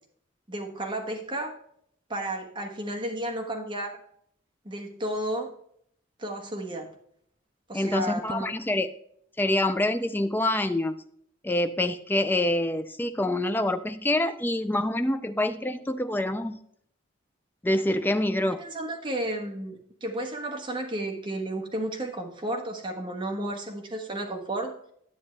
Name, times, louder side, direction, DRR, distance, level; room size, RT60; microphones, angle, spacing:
voice 1, 0.5-1.6 2.1-4.0 4.6-5.5 6.2-6.9 7.7-8.5 18.6-24.7, right 1 dB, 25° right, 1 dB, 1.3 m, -32 dB
voice 2, 7.7-8.9 9.4-11.0 11.4-16.6 17.6-18.6, left 1 dB, 10° left, 9 dB, 0.3 m, -26 dB
10.0 x 8.6 x 3.3 m, 0.67 s
head